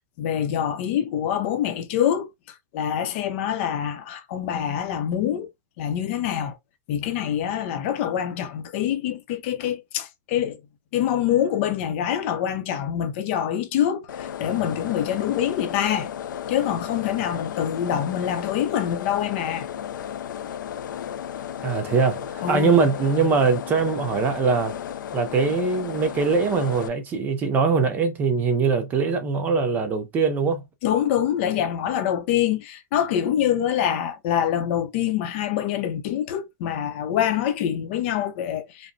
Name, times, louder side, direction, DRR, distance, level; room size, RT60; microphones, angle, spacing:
voice 1, 0.2-2.3 2.7-5.5 5.8-6.6 6.9-10.6 10.9-16.1 16.5-19.7 22.4-22.8 30.8-38.9, left 10 dB, 40° left, 0.6 m, -25 dB
sound 1, 14.1-26.9, left 9 dB, 80° left, 0.4 m, -34 dB
voice 2, 21.6-24.8 25.1-30.6, right 5 dB, 15° right, 0.5 m, -22 dB
5.0 x 2.1 x 2.6 m
hypercardioid pair, 160°, 10 cm